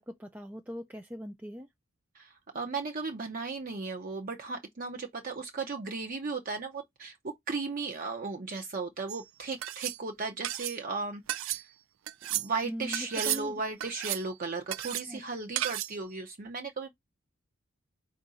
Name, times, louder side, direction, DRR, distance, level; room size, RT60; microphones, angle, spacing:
voice 1, 0.0-1.7 12.6-13.6 15.0-15.2, equal, 10° right, 0.3 m, -41 dB
voice 2, 2.1-11.6 12.3-17.0, right 4 dB, 45° right, 0.6 m, -36 dB
sound 1, 9.1-9.2 9.6-10.0 10.4-10.8 11.3-11.6 12.1-12.5 12.9-13.4 13.8-14.3 14.7-15.1 15.6-16.0, right 14 dB, 85° right, 0.4 m, -33 dB
4.6 x 2.5 x 4.0 m
head